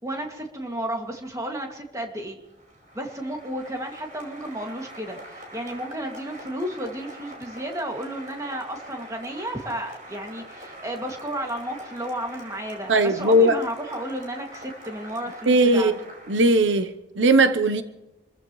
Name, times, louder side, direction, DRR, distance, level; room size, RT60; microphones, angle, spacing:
voice 1, 0.0-2.4 2.9-15.9, right 1 dB, 15° right, 2.3 m, -32 dB
Applause, 2.4-16.8, right 1 dB, 45° right, 5.1 m, -44 dB
voice 2, 12.9-13.6 15.5-15.9 16.3-16.9 17.2-17.8, right 1 dB, 85° right, 0.9 m, -18 dB
27.0 x 14.5 x 3.2 m
head